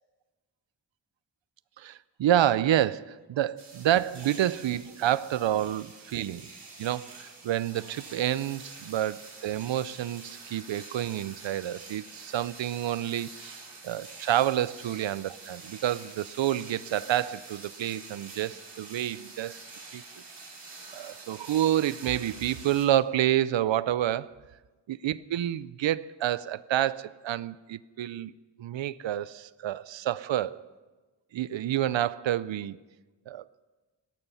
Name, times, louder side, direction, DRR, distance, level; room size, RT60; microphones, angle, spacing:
voice 1, 1.8-6.5 6.8-19.6 19.9-20.0 20.9-24.3 24.9-28.3 28.6-30.6 31.3-32.8 33.3-33.5, right 12 dB, 90° right, 18 dB, 0.5 m, -28 dB
sound 1, 3.6-22.9, right 3 dB, 65° right, 3.7 m, -47 dB
17.0 x 13.5 x 5.5 m, 1.3 s
wide cardioid pair, 75°, 44 cm